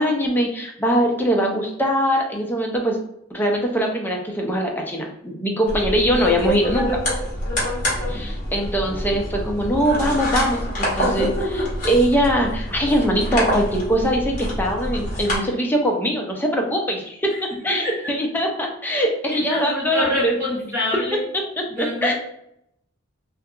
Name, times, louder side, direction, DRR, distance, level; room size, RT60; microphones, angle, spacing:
voice 1, 0.0-3.0 3.3-7.0 8.1-20.3 21.6-22.1, equal, 10° left, 1 dB, 0.4 m, -22 dB
sound 1, 5.7-15.4, equal, 40° left, 1.0 m, -26 dB
voice 2, 7.8-8.3 17.7-18.0 19.3-21.2 21.7-22.1, left 1 dB, 15° right, -6 dB, 0.9 m, -26 dB
2.7 x 2.4 x 2.3 m, 0.76 s
head